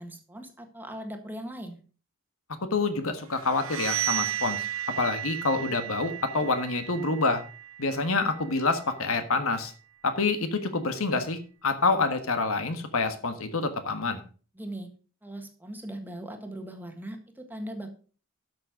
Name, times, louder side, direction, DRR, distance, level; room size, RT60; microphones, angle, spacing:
voice 1, 0.0-1.8 14.5-14.9 15.2-17.9, right 1 dB, 10° right, 5 dB, 1.6 m, -39 dB
voice 2, 2.7-4.6 5.0-7.4 7.8-9.7 10.0-14.2, left 3 dB, 65° left, 8 dB, 1.5 m, -27 dB
sound 1, 3.3-9.0, right 11 dB, 65° right, 0.6 m, -34 dB
12.5 x 6.5 x 4.7 m, 0.38 s
head